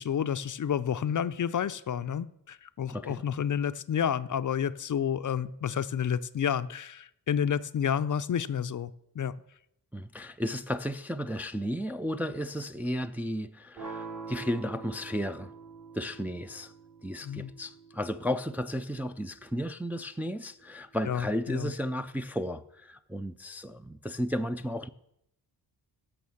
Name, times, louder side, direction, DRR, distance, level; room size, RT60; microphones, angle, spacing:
voice 1, 0.0-9.4 17.2-17.5 21.1-21.7, left 8 dB, 45° left, 0.5 m, -30 dB
voice 2, 2.9-3.2 9.9-15.5 15.9-16.7 17.0-24.9, equal, 5° right, 0.4 m, -34 dB
sound 1, 13.8-19.8, right 4 dB, 50° right, 3.2 m, -46 dB
15.5 x 6.0 x 7.1 m
wide cardioid pair, 120°, 42 cm